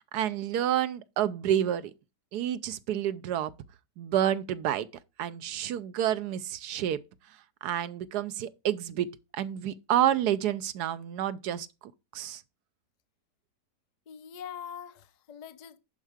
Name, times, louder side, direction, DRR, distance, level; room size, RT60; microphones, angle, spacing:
voice 1, 0.0-1.9 2.3-3.5 4.0-4.9 5.2-7.0 7.6-12.4, right 11 dB, 75° right, 1.2 m, -29 dB
voice 2, 14.1-15.8, left 8 dB, 50° left, 0.5 m, -43 dB
11.0 x 4.5 x 4.9 m
omnidirectional pair, 1.8 m